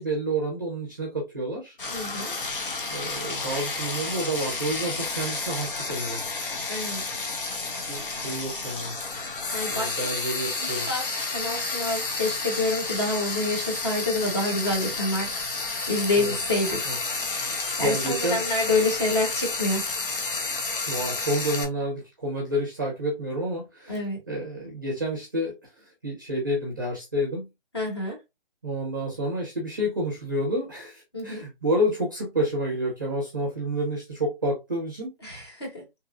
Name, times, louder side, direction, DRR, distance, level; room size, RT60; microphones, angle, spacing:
voice 1, 0.0-1.8 2.9-6.2 7.9-8.9 9.7-11.1 16.2-16.3 16.8-17.0 17.3-18.4 20.9-27.5 28.6-35.1, right 1 dB, 20° right, 0.6 m, -29 dB
Frying (food), 1.8-21.6, left 3 dB, 60° left, 0.8 m, -31 dB
voice 2, 1.9-2.3 6.7-7.2 9.5-10.0 10.3-11.0 11.3-15.3 15.9-16.9 17.8-19.8 23.9-24.2 27.7-28.2 31.1-31.4 35.2-35.8, left 2 dB, 25° left, 1.0 m, -27 dB
3.0 x 2.4 x 2.3 m
hypercardioid pair, 175°, 30 cm